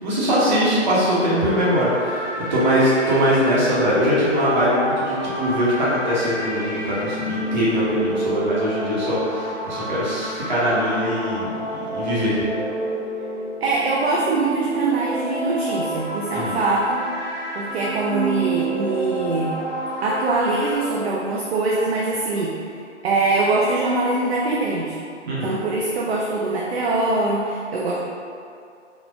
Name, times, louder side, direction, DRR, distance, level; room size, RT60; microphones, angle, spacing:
voice 1, 0.0-2.2 2.5-12.4 16.3-16.6 25.3-25.6, equal, 40° right, -8 dB, 1.0 m, -21 dB
sound 1, 1.5-20.7, right 1 dB, 35° left, 0.7 m, -29 dB
voice 2, 13.6-17.0 17.5-19.6 20.0-22.6 23.0-25.0 25.3-28.0, right 2 dB, 60° right, -4 dB, 0.5 m, -23 dB
3.5 x 2.4 x 2.4 m, 2.3 s
hypercardioid pair, 145°, 37 cm